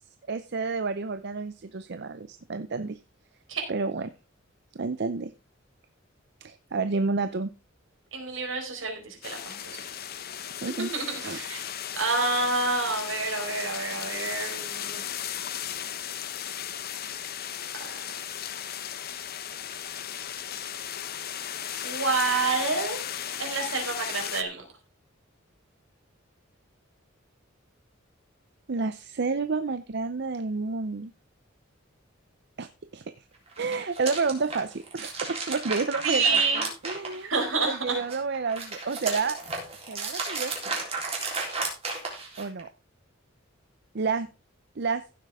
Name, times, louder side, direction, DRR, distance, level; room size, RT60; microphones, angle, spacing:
voice 1, 0.3-3.0 3.7-4.1 4.7-5.3 6.4-7.5 10.6-10.9 11.2-11.5 28.7-31.1 32.6-33.1 33.6-37.3 37.6-39.4 39.9-40.7 42.4-42.7 43.9-44.3 44.8-45.0, right 4 dB, 60° right, 11 dB, 0.6 m, -30 dB
voice 2, 8.1-9.8 10.8-11.7 12.0-15.1 17.8-17.9 21.8-23.0 23.4-24.7 36.0-36.7 37.2-38.0, right 4 dB, 80° right, 3 dB, 4.4 m, -28 dB
sound 1, 9.2-24.4, left 9 dB, 50° left, 0.9 m, -36 dB
sound 2, 33.5-37.6 38.0-42.6, right 3 dB, 30° right, 3.7 m, -34 dB
15.5 x 7.6 x 3.6 m, 0.30 s
head